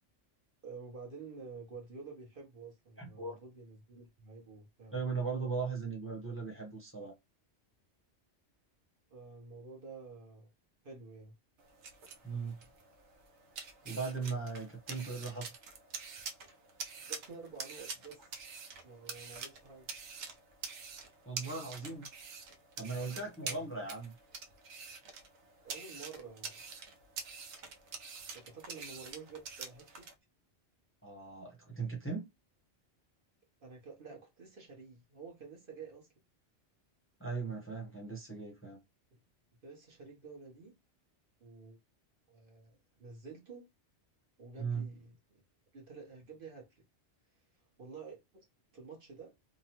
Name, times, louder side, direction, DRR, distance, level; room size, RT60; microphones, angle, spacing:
voice 1, 0.6-5.0 9.1-10.5 10.8-11.3 17.0-18.2 18.8-19.9 23.5-23.9 25.6-26.7 28.3-30.1 33.6-36.1 39.1-39.2 39.6-40.7 41.4-41.8 42.3-43.6 44.4-45.4 45.7-46.8 47.8-48.5 48.7-49.3, right 4 dB, 50° right, 1.1 m, -50 dB
voice 2, 3.0-3.4 4.9-7.1 12.2-12.6 13.8-15.5 21.3-22.1 22.8-24.1 31.0-32.3 37.2-38.8 44.6-44.9, right 4 dB, 15° left, 0.8 m, -38 dB
sound 1, 11.6-30.1, right 5 dB, 75° right, 0.9 m, -46 dB
2.9 x 2.1 x 2.8 m
omnidirectional pair, 1.2 m